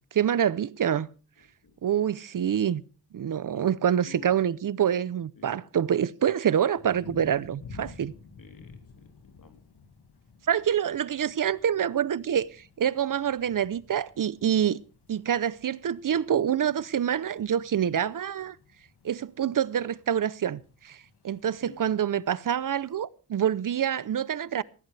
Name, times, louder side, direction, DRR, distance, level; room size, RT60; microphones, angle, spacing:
voice 1, 0.1-1.1 1.8-2.8 3.1-8.1 10.5-14.8 15.1-18.6 19.0-24.6, right 9 dB, 55° right, 0.6 m, -26 dB
voice 2, 5.4-5.7 8.4-9.6 21.6-22.0, left 6 dB, 55° left, 3.4 m, -51 dB
sound 1, 6.7-22.9, left 4 dB, 80° left, 2.0 m, -53 dB
20.0 x 15.5 x 3.3 m
wide cardioid pair, 120°, 39 cm